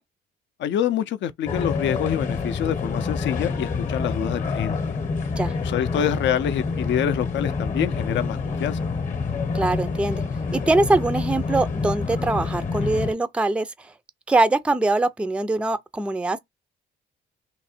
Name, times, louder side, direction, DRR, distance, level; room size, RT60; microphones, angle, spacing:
voice 1, 0.6-4.8 5.6-8.8, left 10 dB, 65° left, 0.5 m, -26 dB
sound 1, 1.5-13.1, left 4 dB, 40° left, 0.9 m, -27 dB
voice 2, 9.5-10.2 10.5-13.7 14.3-16.4, right 2 dB, 5° right, 0.4 m, -22 dB
3.2 x 2.7 x 4.2 m
cardioid pair, 90°, 20 cm